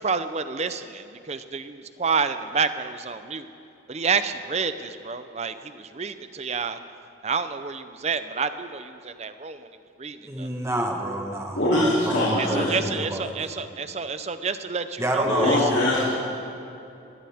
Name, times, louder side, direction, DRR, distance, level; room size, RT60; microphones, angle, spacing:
voice 1, 0.0-3.5 3.9-6.8 7.2-9.7 10.0-10.5 12.4-15.6, right 5 dB, 35° right, 11 dB, 0.5 m, -29 dB
voice 2, 10.2-13.4 15.0-15.6, right 1 dB, 15° right, 2 dB, 1.3 m, -29 dB
voice 3, 11.5-12.8 15.2-16.1, left 1 dB, 65° left, -8 dB, 2.9 m, -22 dB
19.0 x 17.0 x 3.5 m, 2.8 s
head